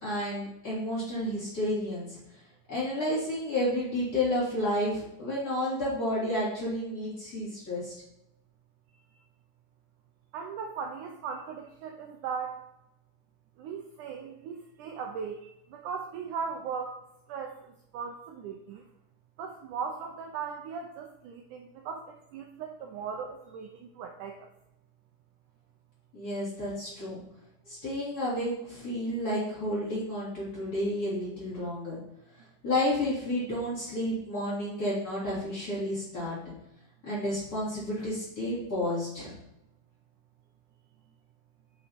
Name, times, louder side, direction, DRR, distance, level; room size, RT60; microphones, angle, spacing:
voice 1, 0.0-2.2 2.7-7.9 26.1-27.2 27.7-32.0 32.6-36.4 37.0-39.4, left 1 dB, 25° left, -9 dB, 3.4 m, -31 dB
voice 2, 10.3-12.6 13.6-17.0 17.3-18.8 19.4-24.5, right 6 dB, 75° right, 3 dB, 1.9 m, -38 dB
6.7 x 5.7 x 4.4 m, 0.85 s
omnidirectional pair, 4.1 m